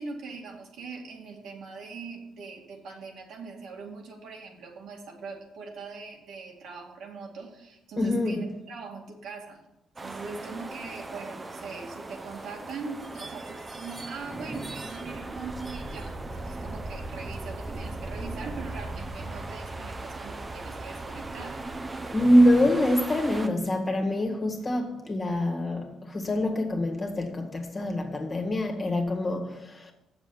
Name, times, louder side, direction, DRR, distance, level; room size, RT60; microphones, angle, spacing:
voice 1, 0.0-9.6 10.0-21.6, right 4 dB, 75° right, 2.2 m, -41 dB
voice 2, 8.0-8.4 22.1-29.9, left 1 dB, 30° left, 1.8 m, -25 dB
sound 1, 10.0-23.5, right 2 dB, 25° right, 0.9 m, -38 dB
7.5 x 7.0 x 7.2 m
cardioid pair, 90°, 0 cm